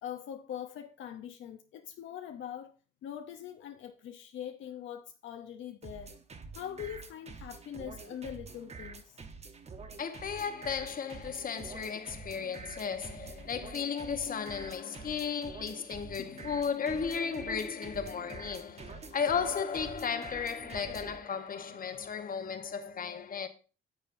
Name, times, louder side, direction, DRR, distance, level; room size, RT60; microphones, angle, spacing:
voice 1, 0.0-2.7 3.0-6.2 6.5-9.2 16.2-16.6, left 10 dB, 75° left, 0.8 m, -43 dB
sound 1, 5.8-21.2, right 4 dB, 35° right, 0.9 m, -47 dB
voice 2, 10.0-23.5, left 6 dB, 45° left, 1.1 m, -35 dB
9.9 x 7.1 x 2.6 m
cardioid pair, 90°, 20 cm